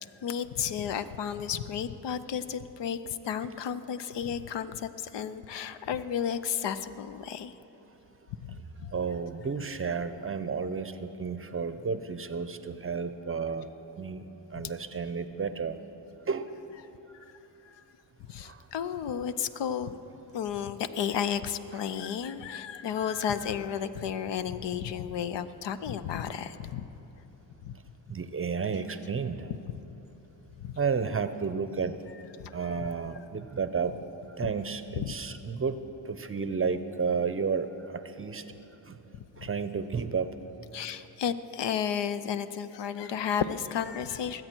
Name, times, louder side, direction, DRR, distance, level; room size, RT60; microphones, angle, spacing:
voice 1, 0.0-7.5 8.4-8.9 17.3-17.4 17.6-17.8 18.3-20.0 20.3-26.9 27.6-27.7 30.6-30.8 32.4-32.9 35.0-35.1 39.4-39.5 40.7-44.4, left 8 dB, 65° left, 12 dB, 0.7 m, -33 dB
voice 2, 8.9-13.7 14.0-15.8 16.3-16.6 18.4-18.7 27.7-27.8 28.1-29.5 30.8-32.0 32.5-34.0 34.3-35.8 36.0-38.5 38.8-39.0 39.4-40.4, right 5 dB, 30° right, 11 dB, 0.7 m, -32 dB
20.0 x 7.9 x 4.5 m, 3.0 s
supercardioid pair, 60°, 46 cm